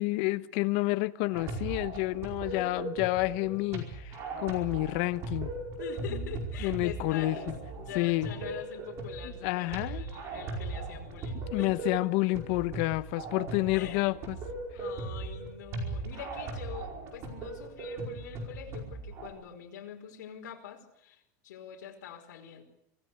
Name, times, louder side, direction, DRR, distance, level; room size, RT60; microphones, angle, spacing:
voice 1, 0.0-5.5 6.1-6.2 6.6-7.4 7.9-8.3 9.2-10.1 11.5-14.4, left 20 dB, 40° left, 1.0 m, -29 dB
sound 1, 1.3-19.3, right 3 dB, 30° right, 4.9 m, -38 dB
voice 2, 2.5-2.9 5.8-11.7 13.7-14.1 14.7-22.6, left 9 dB, 80° left, 5.0 m, -45 dB
25.5 x 16.5 x 9.9 m
supercardioid pair, 175°, 10 cm